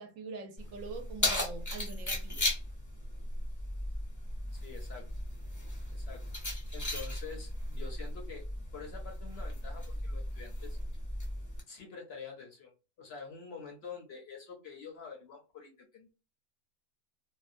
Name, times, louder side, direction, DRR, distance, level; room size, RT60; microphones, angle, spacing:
voice 1, 0.0-2.5, right 4 dB, 75° right, 0.9 m, -44 dB
Keys jangling, 0.6-11.6, left 1 dB, 25° left, 0.4 m, -36 dB
voice 2, 4.5-5.1 5.9-6.3 6.7-10.8 11.7-16.1, left 5 dB, 60° left, 0.7 m, -47 dB
2.6 x 2.1 x 2.5 m
omnidirectional pair, 1.5 m